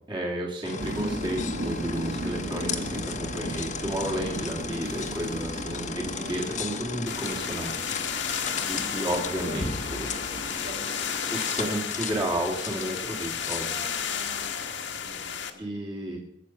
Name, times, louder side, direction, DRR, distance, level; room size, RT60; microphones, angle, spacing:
voice 1, 0.1-7.8 8.6-10.1 11.3-13.7 15.6-16.2, right 1 dB, 25° right, -2 dB, 2.4 m, -32 dB
sound 1, 0.6-15.0, left 5 dB, 40° left, 1.2 m, -36 dB
sound 2, 0.8-10.7, right 1 dB, 50° right, 1.3 m, -36 dB
voice 2, 5.8-6.6 8.4-9.6 9.8-11.3 13.7-15.9, right 1 dB, 80° right, -1 dB, 6.2 m, -46 dB
sound 3, 7.1-15.5, left 8 dB, 70° left, 1.5 m, -33 dB
21.5 x 8.5 x 5.9 m, 0.81 s
head